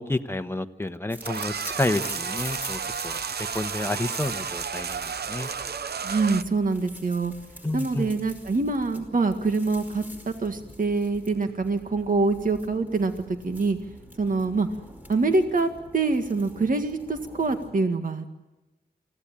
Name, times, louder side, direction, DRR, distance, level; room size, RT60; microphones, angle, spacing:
voice 1, 0.0-5.5 7.6-8.1, left 2 dB, 15° left, 8 dB, 1.1 m, -30 dB
sound 1, 1.1-17.7, equal, 10° right, 5.0 m, -45 dB
sound 2, 1.2-6.4, right 6 dB, 80° right, 0.8 m, -32 dB
voice 2, 6.0-7.3 7.7-13.8 14.2-14.7 15.1-18.4, right 3 dB, 55° right, 6 dB, 1.8 m, -25 dB
24.5 x 17.0 x 8.9 m, 1.1 s
wide cardioid pair, 100°, 17 cm